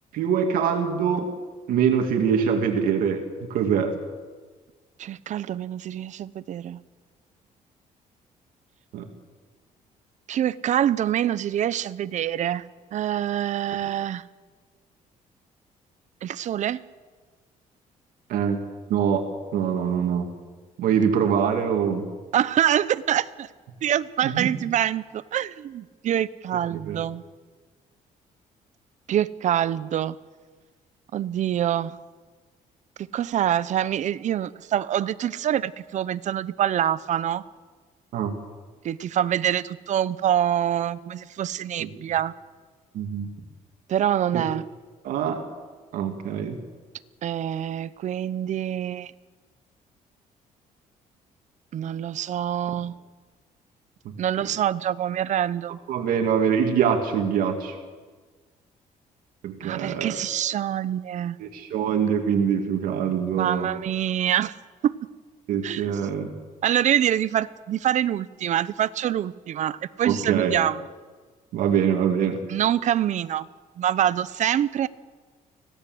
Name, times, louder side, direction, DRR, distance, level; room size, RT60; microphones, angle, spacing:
voice 1, 0.1-1.3 1.7-3.9 8.9-9.1 18.3-18.6 18.9-19.3 19.5-20.3 20.8-22.1 24.2-24.5 26.8-27.0 38.1-38.4 41.8-41.9 42.9-43.3 44.3-44.4 45.0-45.4 45.9-46.6 54.0-54.2 55.9-57.8 59.4-60.2 61.4-63.7 65.5-66.3 70.0-70.6 71.5-72.4, right 7 dB, 80° right, 4 dB, 2.5 m, -24 dB
voice 2, 5.0-6.8 10.3-12.6 12.9-14.2 16.2-16.8 22.3-23.5 23.8-27.2 29.1-30.2 31.1-32.0 33.1-37.4 38.8-42.3 43.9-44.7 47.2-49.1 51.7-52.9 54.2-55.8 59.6-61.4 63.3-64.5 64.8-65.0 65.6-65.9 66.6-70.8 72.5-73.5 73.8-74.9, right 10 dB, 55° right, 16 dB, 0.8 m, -25 dB
25.5 x 17.0 x 7.9 m, 1.4 s
cardioid pair, 115°, 14 cm